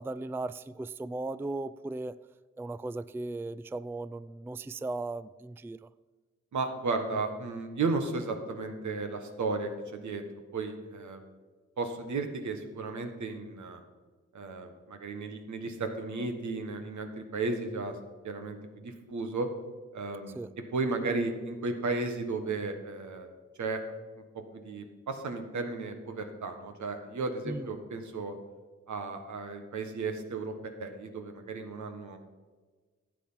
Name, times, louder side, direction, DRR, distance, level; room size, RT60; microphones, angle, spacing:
voice 1, 0.0-2.2 2.6-5.9 20.3-20.5 27.5-27.7, right 2 dB, 10° right, 16 dB, 0.3 m, -37 dB
voice 2, 6.5-10.2 10.5-11.2 11.8-13.8 14.3-18.0 18.2-19.5 19.9-20.4 20.7-23.3 23.6-23.8 24.6-28.3 28.9-32.2, right 3 dB, 75° right, 6 dB, 1.5 m, -34 dB
11.5 x 7.5 x 5.6 m, 1.4 s
supercardioid pair, 45°, 29 cm